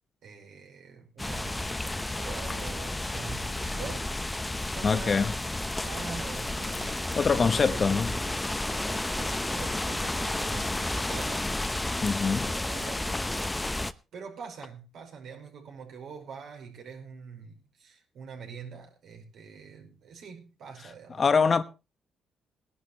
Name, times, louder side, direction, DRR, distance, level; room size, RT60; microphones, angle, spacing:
voice 1, 0.2-4.2 4.7-5.3 5.8-8.1 8.7-11.5 12.4-21.5, right 6 dB, 75° right, 5.2 m, -44 dB
sound 1, 1.2-13.9, left 1 dB, 15° left, 0.8 m, -32 dB
voice 2, 4.8-5.3 7.2-8.1 12.0-12.5 21.2-21.6, left 5 dB, 40° left, 1.0 m, -24 dB
19.0 x 11.0 x 3.2 m
cardioid pair, 85°, 0 cm